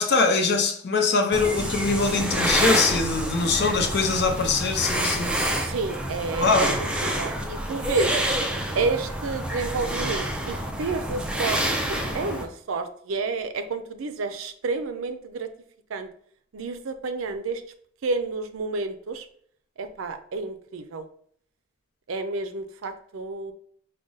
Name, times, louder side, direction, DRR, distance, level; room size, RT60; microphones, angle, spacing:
voice 1, 0.0-5.4 6.4-6.8, left 4 dB, 55° left, 0.7 m, -23 dB
sound 1, 1.3-12.4, right 1 dB, 5° right, 0.4 m, -27 dB
voice 2, 5.6-8.2 8.8-11.6 11.9-15.5 15.9-16.1 16.5-17.6 18.0-19.3 19.8-21.1 22.1-23.5, right 4 dB, 80° right, 0.5 m, -30 dB
5.0 x 2.2 x 3.9 m
head